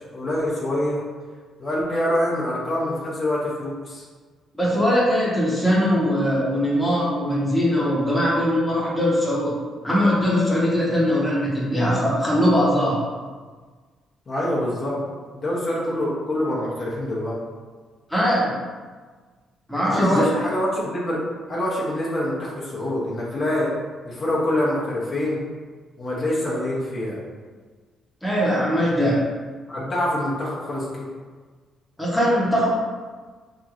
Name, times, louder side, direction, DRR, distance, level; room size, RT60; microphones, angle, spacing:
voice 1, 0.1-1.0 1.6-4.0 14.3-17.4 19.8-23.7 24.0-25.4 26.0-27.2 29.7-31.1, left 1 dB, 40° left, -6 dB, 0.8 m, -25 dB
voice 2, 4.5-9.5 9.8-13.0 18.1-18.6 19.7-20.2 28.2-29.2 32.0-32.7, equal, 5° left, -7 dB, 0.9 m, -21 dB
3.0 x 2.6 x 2.4 m, 1.4 s
cardioid pair, 90°, 0 cm